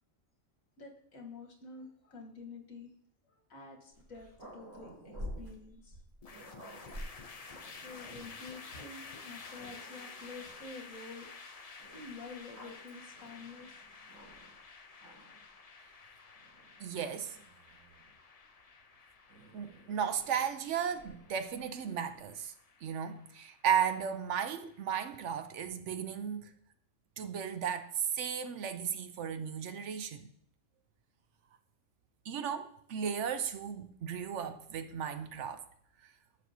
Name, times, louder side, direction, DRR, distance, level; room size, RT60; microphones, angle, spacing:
voice 1, 0.8-2.9 3.3-6.0 7.8-11.3 11.9-13.7, left 4 dB, 85° left, 1.7 m, -49 dB
Growling, 3.9-8.5 9.2-9.3 9.6-10.7 11.8-14.6 14.9-15.5 16.4-18.2 19.3-21.8, equal, 90° right, 4.1 m, -51 dB
sound 1, 6.2-25.5, left 4 dB, 40° left, 0.5 m, -52 dB
voice 2, 16.8-17.4 19.5-22.5 22.8-26.5 27.2-30.3 32.3-35.6, right 8 dB, 70° right, 0.9 m, -35 dB
10.5 x 6.3 x 2.8 m
omnidirectional pair, 1.4 m